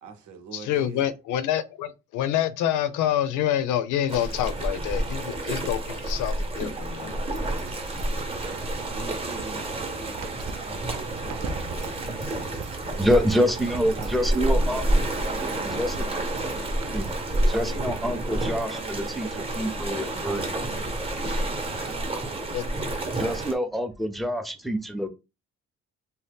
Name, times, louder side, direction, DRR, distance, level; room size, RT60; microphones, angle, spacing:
voice 1, 0.0-1.1 8.9-12.0 13.2-13.5 13.8-14.8 15.3-16.4 17.3-18.0 18.3-20.0 21.8-22.9, right 5 dB, 80° right, 0.9 m, -44 dB
voice 2, 0.5-7.2 22.5-22.6, left 11 dB, 90° left, 0.5 m, -27 dB
sound 1, 4.1-23.5, right 1 dB, 20° right, 0.8 m, -29 dB
sound 2, 7.2-17.4, right 4 dB, 60° right, 0.5 m, -40 dB
voice 3, 12.5-14.8 15.8-16.1 16.9-17.2 17.5-20.5 23.1-25.1, equal, ahead, 0.4 m, -26 dB
2.8 x 2.1 x 3.3 m
cardioid pair, 90°, 30 cm